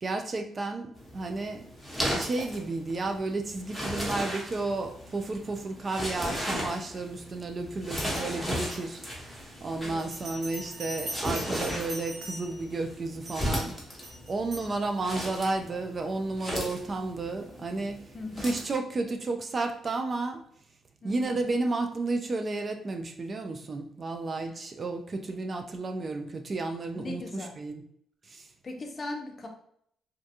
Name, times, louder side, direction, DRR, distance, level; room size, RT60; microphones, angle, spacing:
voice 1, 0.0-1.6 2.1-13.7 14.3-18.1 18.4-20.4 21.0-27.8 28.3-28.5, right 3 dB, 35° right, 5 dB, 0.3 m, -32 dB
sound 1, 1.0-18.7, equal, 5° right, 1.0 m, -36 dB
voice 2, 8.1-8.5 9.8-10.1 18.1-18.4 21.0-21.5 26.9-27.6 28.6-29.5, left 2 dB, 35° left, 3 dB, 0.6 m, -39 dB
Bell, 10.0-12.7 13.2-13.6 14.0-14.7, right 1 dB, 80° right, 1.2 m, -41 dB
2.5 x 2.2 x 2.7 m, 0.67 s
cardioid pair, 90°, 0 cm